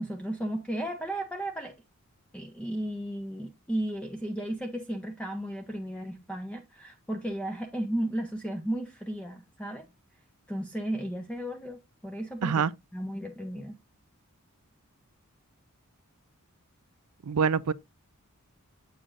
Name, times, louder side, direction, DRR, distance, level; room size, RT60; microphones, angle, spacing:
voice 1, 0.0-1.7 2.3-9.9 10.5-12.6 12.9-13.7, right 1 dB, 5° left, 0.7 m, -34 dB
voice 2, 17.3-17.7, right 6 dB, 90° right, 0.5 m, -25 dB
7.6 x 6.8 x 2.5 m
head